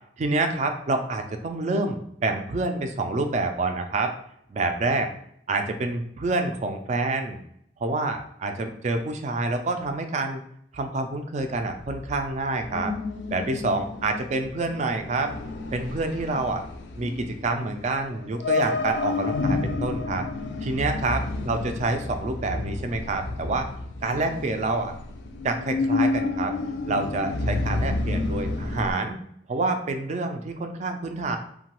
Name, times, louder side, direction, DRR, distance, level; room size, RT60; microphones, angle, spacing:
voice 1, 0.2-4.1 4.5-5.1 5.5-7.4 7.8-10.4 10.7-12.9 13.3-15.3 15.7-16.6 17.0-20.3 20.6-23.7 24.0-24.9 25.4-26.5 26.9-29.2 29.5-31.4, right 3 dB, 40° right, 6 dB, 0.3 m, -27 dB
sound 1, 11.4-28.9, left 3 dB, 75° left, 0.4 m, -30 dB
2.9 x 2.2 x 2.9 m, 0.69 s
head